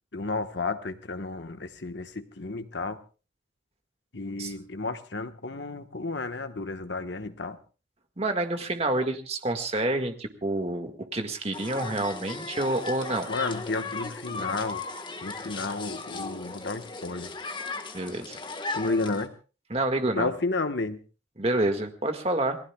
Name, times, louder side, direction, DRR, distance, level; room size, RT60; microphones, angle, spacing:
voice 1, 0.1-3.0 4.1-7.6 13.3-14.8 15.2-17.3 18.7-19.3 20.1-21.0, left 3 dB, 70° left, 8 dB, 1.3 m, -32 dB
voice 2, 8.2-13.3 17.9-18.4 19.7-20.3 21.4-22.6, right 2 dB, 35° right, 6 dB, 1.8 m, -28 dB
sound 1, 11.5-19.3, left 3 dB, 25° left, 1.5 m, -37 dB
28.5 x 19.5 x 2.3 m, 0.35 s
head